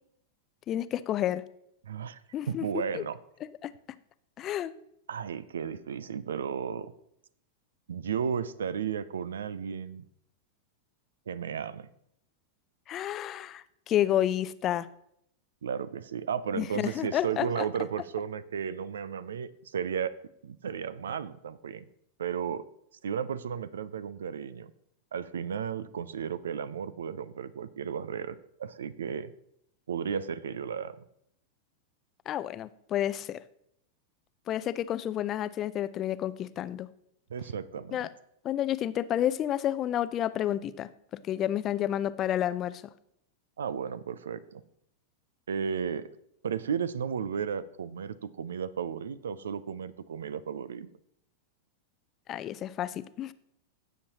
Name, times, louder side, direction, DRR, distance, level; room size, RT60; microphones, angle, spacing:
voice 1, 0.7-1.4 2.3-3.0 3.4-3.7 4.4-4.7 12.9-14.9 16.5-17.7 32.3-33.4 34.5-36.9 37.9-38.1 38.4-42.8 52.3-53.3, left 11 dB, 35° left, 16 dB, 0.5 m, -30 dB
voice 2, 1.8-2.2 2.5-3.2 5.1-6.9 7.9-10.0 11.3-11.9 15.6-20.1 20.4-21.8 22.2-22.6 23.0-24.7 25.1-29.3 29.9-31.0 37.3-38.0 43.6-44.6 45.5-46.1 46.4-50.9, right 7 dB, 75° right, 17 dB, 0.5 m, -34 dB
16.0 x 7.2 x 2.9 m, 0.73 s
hypercardioid pair, 95°, 0 cm